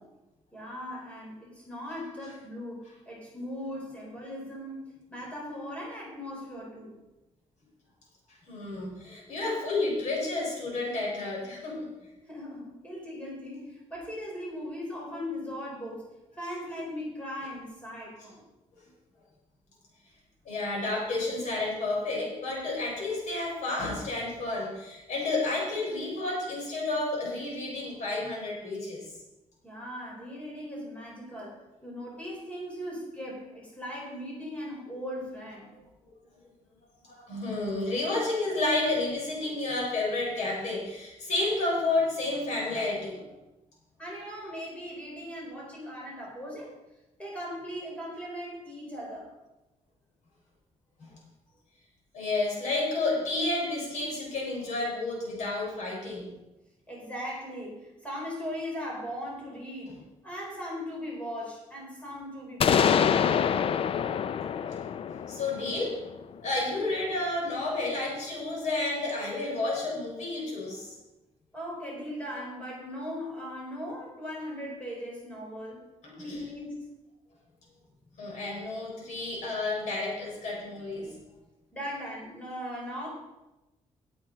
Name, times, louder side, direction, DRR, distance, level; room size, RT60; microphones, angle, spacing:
voice 1, 0.5-6.9 12.3-16.0 16.4-18.4 29.6-31.6 31.8-35.7 44.0-46.8 47.2-49.3 56.9-60.0 60.2-63.2 71.5-75.8 76.2-76.8 81.7-83.1, equal, 10° left, -4 dB, 4.3 m, -38 dB
voice 2, 8.5-11.9 18.2-18.3 20.4-29.0 37.0-43.3 51.0-51.1 52.1-56.3 59.9-60.0 64.7-64.8 65.1-66.0 66.4-71.0 76.0-76.5 78.2-81.2, left 2 dB, 75° left, -2 dB, 4.5 m, -31 dB
sound 1, 62.6-66.4, left 8 dB, 50° left, 0.4 m, -26 dB
18.0 x 7.9 x 3.9 m, 0.98 s
wide cardioid pair, 165°, 13 cm